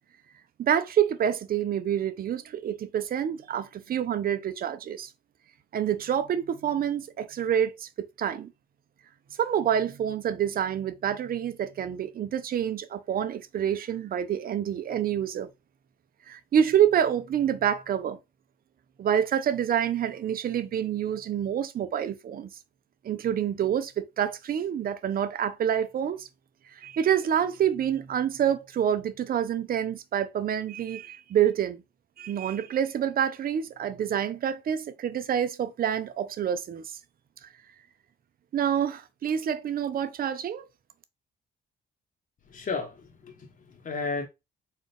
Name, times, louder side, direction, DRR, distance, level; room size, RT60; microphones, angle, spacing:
voice 1, 0.6-5.1 5.7-8.5 9.4-15.5 16.3-18.2 19.0-22.5 23.0-26.3 26.8-31.8 32.2-36.8 38.5-40.6, right 9 dB, 50° right, 0.5 m, -27 dB
voice 2, 42.5-44.3, left 4 dB, 45° left, 1.0 m, -34 dB
4.2 x 2.4 x 3.4 m
cardioid pair, 90°, 20 cm